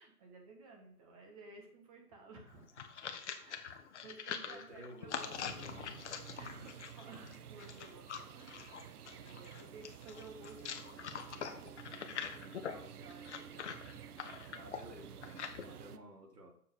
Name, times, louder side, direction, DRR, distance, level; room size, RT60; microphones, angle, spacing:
voice 1, 0.0-2.8 3.3-5.1 6.4-13.7 14.0-14.5 15.6-15.9, right 3 dB, 20° right, 2 dB, 1.3 m, -56 dB
sound 1, 2.5-15.6, left 7 dB, 45° left, 0.9 m, -44 dB
voice 2, 4.4-6.2 6.5-6.6 14.5-16.5, equal, 90° right, 1 dB, 2.6 m, -53 dB
sound 2, 5.1-16.0, right 9 dB, 70° right, 0.7 m, -52 dB
7.0 x 4.4 x 5.1 m, 0.64 s
hypercardioid pair, 155°, 47 cm